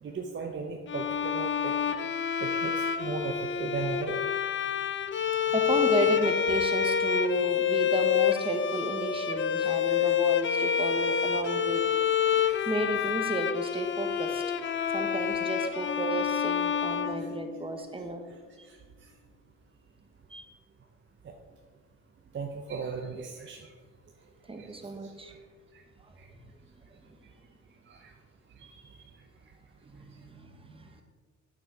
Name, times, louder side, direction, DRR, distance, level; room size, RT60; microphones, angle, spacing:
voice 1, 0.0-2.0 2.4-4.2 9.9-10.1 10.6-10.7 11.2-11.3 11.5-11.6 12.4-12.7 14.8-14.9 17.0-17.3 17.9-18.0 18.6-19.1 21.2-21.4 22.3-23.8 24.5-25.4 25.7-25.8 26.2-26.3 27.2-27.3 27.8-28.1 28.5-29.0, right 4 dB, 40° right, 2 dB, 0.8 m, -38 dB
Bowed string instrument, 0.9-17.9, left 8 dB, 40° left, 0.6 m, -28 dB
voice 2, 5.5-11.8 12.3-18.2 20.3-20.5 24.5-25.4 27.1-27.2 29.8-31.0, right 2 dB, 20° right, 5 dB, 1.2 m, -33 dB
8.5 x 6.6 x 4.8 m, 1.5 s
cardioid pair, 90°, 30 cm